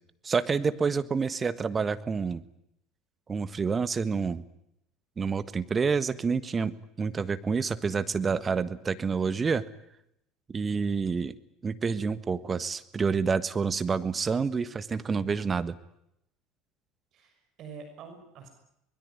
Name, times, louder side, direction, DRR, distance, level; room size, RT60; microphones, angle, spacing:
voice 1, 0.2-2.4 3.3-4.4 5.2-9.6 10.5-11.3 11.6-15.8, right 5 dB, 30° right, 13 dB, 1.5 m, -28 dB
voice 2, 17.1-18.5, right 5 dB, 50° right, 6 dB, 6.2 m, -46 dB
24.0 x 21.5 x 9.7 m, 0.80 s
hypercardioid pair, 70°, 0 cm